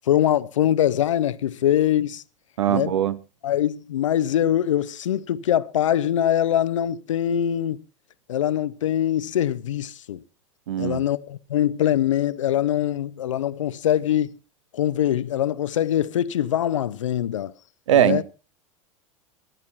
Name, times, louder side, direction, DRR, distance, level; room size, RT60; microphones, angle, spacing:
voice 1, 0.1-2.2 2.7-2.9 3.4-7.8 8.3-10.2 10.8-14.4 14.7-17.5 17.9-18.2, left 11 dB, 70° left, 0.7 m, -23 dB
voice 2, 2.6-3.2 10.7-11.0 17.9-18.2, right 11 dB, 70° right, 0.9 m, -20 dB
25.0 x 11.5 x 2.9 m
figure-of-eight pair, 80°, 16 cm